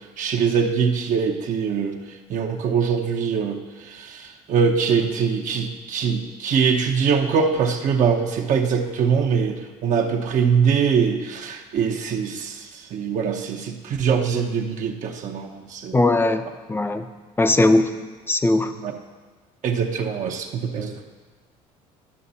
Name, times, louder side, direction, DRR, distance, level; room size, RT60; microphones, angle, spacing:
voice 1, 0.2-2.0 2.3-3.6 3.9-16.0 18.8-18.9 19.6-20.9, right 6 dB, 55° right, 3 dB, 0.9 m, -23 dB
voice 2, 15.9-16.4 16.7-17.1 17.4-17.9 18.3-18.7, left 2 dB, 15° left, 9 dB, 0.6 m, -19 dB
11.0 x 5.9 x 4.2 m, 1.4 s
supercardioid pair, 85°, 15 cm